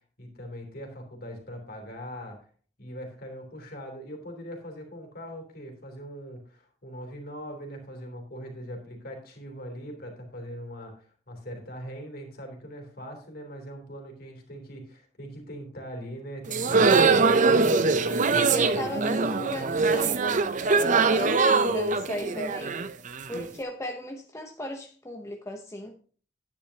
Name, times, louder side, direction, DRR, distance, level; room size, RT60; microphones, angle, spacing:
voice 1, 0.2-2.4 2.8-17.7 18.0-19.7, equal, 55° left, 3.1 m, -41 dB
sound 1, 16.5-23.4, right 4 dB, 45° right, 0.6 m, -22 dB
voice 2, 18.5-22.8 23.3-25.9, left 1 dB, 15° left, 0.8 m, -36 dB
10.5 x 9.7 x 2.8 m
head